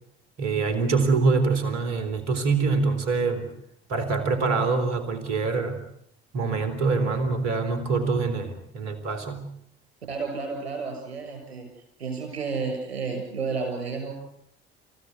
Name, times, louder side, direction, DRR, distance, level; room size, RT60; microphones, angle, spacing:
voice 1, 0.4-3.5 3.9-5.8 6.3-9.4, right 4 dB, 60° right, 10 dB, 3.9 m, -25 dB
voice 2, 10.1-11.7 12.0-14.1, right 4 dB, 80° right, 4 dB, 7.2 m, -31 dB
29.0 x 16.0 x 8.3 m, 0.72 s
figure-of-eight pair, 55°, 31 cm